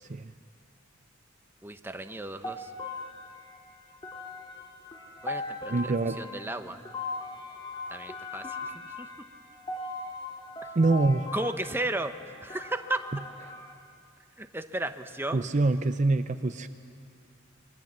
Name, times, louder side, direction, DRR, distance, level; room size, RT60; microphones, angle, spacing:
voice 1, 1.6-2.7 5.2-6.8 7.9-9.1 11.3-12.1 12.4-13.0 14.4-15.5, right 1 dB, 10° right, 8 dB, 0.8 m, -34 dB
sound 1, 2.4-13.7, left 3 dB, 25° left, 2.5 m, -40 dB
voice 2, 5.7-6.2 10.8-11.3 15.3-16.7, right 2 dB, 35° right, 9 dB, 0.6 m, -25 dB
26.5 x 21.5 x 7.4 m, 2.4 s
head